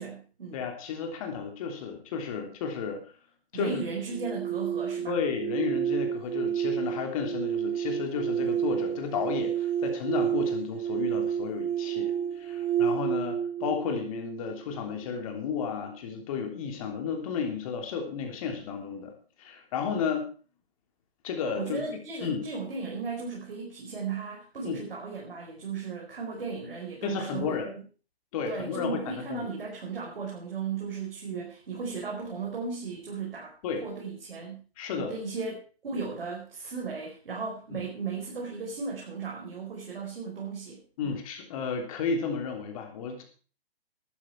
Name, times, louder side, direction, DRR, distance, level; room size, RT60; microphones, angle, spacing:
voice 1, 0.0-0.6 3.5-5.2 21.6-27.7 28.4-33.5 33.8-34.6 34.9-35.6 35.8-41.2, right 5 dB, 60° right, -2 dB, 4.9 m, -36 dB
voice 2, 0.5-3.0 3.5-3.8 5.1-12.1 12.4-19.1 19.4-20.3 21.2-22.4 24.6-24.8 27.0-27.7 28.3-29.5 33.6-33.8 34.8-35.1 37.7-37.8 41.0-43.2, left 6 dB, 35° left, 4 dB, 3.3 m, -33 dB
sound 1, 4.1-15.1, right 9 dB, 25° right, 5.1 m, -30 dB
13.5 x 12.5 x 4.7 m, 0.38 s
figure-of-eight pair, 140°, 31 cm